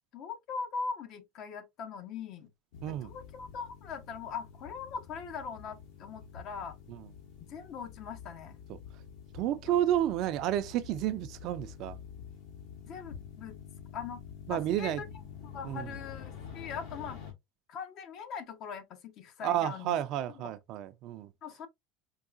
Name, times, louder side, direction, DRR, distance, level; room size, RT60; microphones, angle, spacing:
voice 1, 0.1-2.5 2.9-6.8 7.4-8.6 9.7-9.8 12.8-13.5 13.9-14.2 14.5-15.0 15.4-17.2 17.7-20.0 20.3-20.5 21.4-21.7, left 6 dB, 50° left, 0.8 m, -41 dB
sound 1, 2.7-17.3, left 8 dB, 65° left, 1.5 m, -48 dB
voice 2, 2.8-3.1 6.9-7.0 8.7-8.8 9.3-12.0 14.5-15.0 15.6-15.9 19.4-21.3, right 12 dB, 55° right, 0.4 m, -31 dB
4.6 x 2.3 x 2.4 m
supercardioid pair, 115°, 0 cm